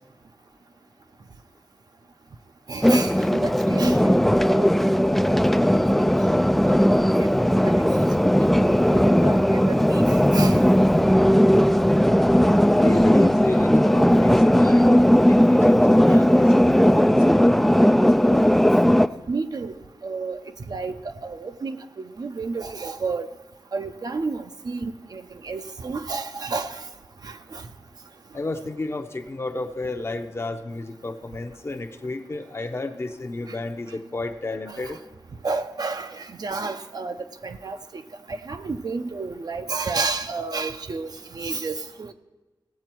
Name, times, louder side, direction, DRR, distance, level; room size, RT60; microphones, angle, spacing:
voice 1, 2.7-4.7 4.9-5.2 5.7-6.0 6.6-7.0 7.6-7.8 8.7-10.0 10.3-10.6 16.1-16.2 19.3-19.7 20.0-20.4 20.7-20.9 21.2-21.8 22.2-23.3 23.7-26.8 27.2-27.6 34.7-34.9 35.4-37.2 37.4-38.0 38.3-42.1, right 4 dB, 55° right, 0.6 m, -31 dB
sound 1, 2.8-19.1, equal, ahead, 0.3 m, -17 dB
voice 2, 12.7-18.5 28.3-35.0, left 2 dB, 35° left, 0.7 m, -31 dB
17.0 x 7.8 x 4.5 m
wide cardioid pair, 120°, 8 cm